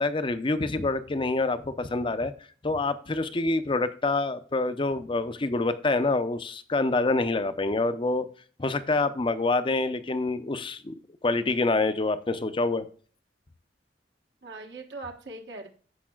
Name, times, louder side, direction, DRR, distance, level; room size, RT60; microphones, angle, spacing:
voice 1, 0.0-2.3 2.6-8.3 8.6-10.9 11.2-12.9, left 3 dB, 30° left, 0.6 m, -26 dB
voice 2, 14.4-15.7, right 2 dB, 70° right, 1.2 m, -41 dB
14.5 x 5.3 x 2.3 m
head